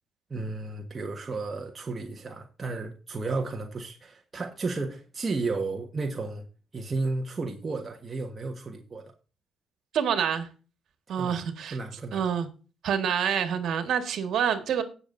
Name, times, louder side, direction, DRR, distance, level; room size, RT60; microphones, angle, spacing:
voice 1, 0.3-6.4 6.7-9.0 11.2-11.4 11.7-12.3, right 3 dB, 30° right, 1.5 m, -33 dB
voice 2, 9.9-10.5 11.1-11.8 12.1-12.5 12.8-14.8, right 8 dB, 70° right, 1.8 m, -27 dB
18.0 x 6.9 x 2.7 m
cardioid pair, 90°, 0 cm